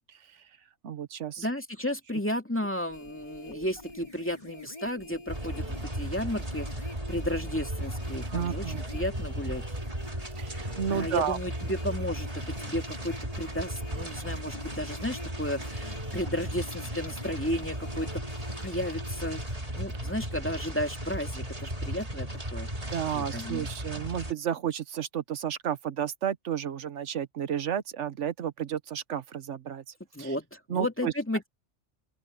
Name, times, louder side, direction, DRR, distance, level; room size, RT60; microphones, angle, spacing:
voice 1, 0.8-1.5 8.3-8.9 10.4-11.4 22.9-29.8 30.2-30.4 30.7-31.1, right 9 dB, 85° right, 1.2 m, -32 dB
voice 2, 1.4-9.7 10.9-18.2 18.6-22.7 23.1-23.7 30.1-31.5, left 1 dB, 10° left, 2.3 m, -33 dB
sound 1, 2.8-19.4, left 1 dB, 30° left, 4.5 m, -46 dB
sound 2, 5.3-24.3, right 1 dB, 30° right, 2.9 m, -36 dB
open air
omnidirectional pair, 1.2 m